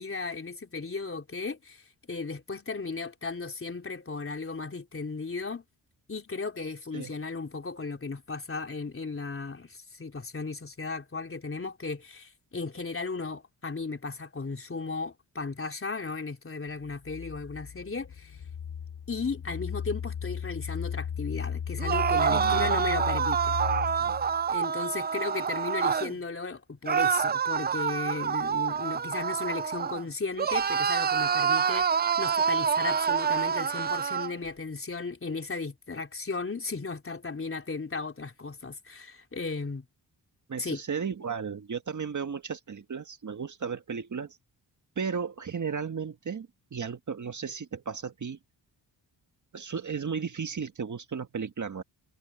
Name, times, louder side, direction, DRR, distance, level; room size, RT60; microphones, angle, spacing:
voice 1, 0.0-5.6 6.1-18.4 19.1-23.6 24.5-39.9 40.6-40.8, left 4 dB, 30° left, 3.6 m, -35 dB
sound 1, 16.8-24.5, left 8 dB, 70° left, 5.2 m, -36 dB
sound 2, 21.8-26.1 26.9-30.0 30.4-34.3, right 7 dB, 25° right, 0.3 m, -27 dB
voice 2, 22.3-22.8 24.0-24.1 40.5-44.4 44.9-48.4 49.5-51.8, right 6 dB, 45° right, 1.7 m, -34 dB
cardioid pair, 90°, 42 cm